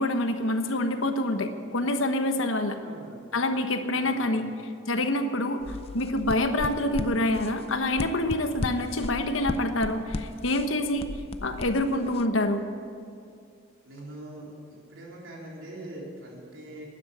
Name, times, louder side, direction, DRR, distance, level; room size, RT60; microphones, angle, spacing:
voice 1, 0.0-2.8 3.3-4.5 4.9-11.1 11.4-12.6, left 1 dB, 85° left, 7 dB, 1.2 m, -26 dB
voice 2, 2.8-3.3 3.9-4.5 13.8-14.5 14.9-16.8, right 1 dB, 80° right, -3 dB, 3.9 m, -42 dB
sound 1, 5.6-12.2, left 2 dB, 30° left, 0.4 m, -36 dB
12.0 x 9.7 x 9.9 m, 2.4 s
head